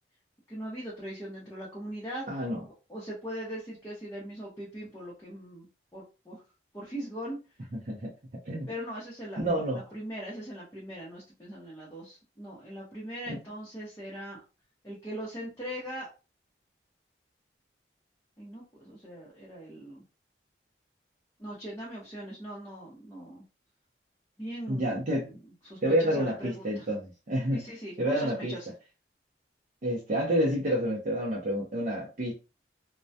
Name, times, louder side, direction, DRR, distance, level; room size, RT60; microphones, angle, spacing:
voice 1, 0.5-2.2 2.9-5.7 5.9-6.4 6.7-7.4 8.7-14.4 14.8-16.1 18.4-20.0 21.4-23.4 24.4-25.0 25.6-26.8 27.5-28.7, equal, 15° left, -7 dB, 0.7 m, -40 dB
voice 2, 2.3-2.6 7.9-8.1 8.5-8.7 9.4-9.8 13.3-13.4 24.7-25.4 25.8-27.6 28.0-28.6 29.8-32.3, equal, 40° right, -4 dB, 0.5 m, -29 dB
2.1 x 2.1 x 2.7 m, 0.31 s
head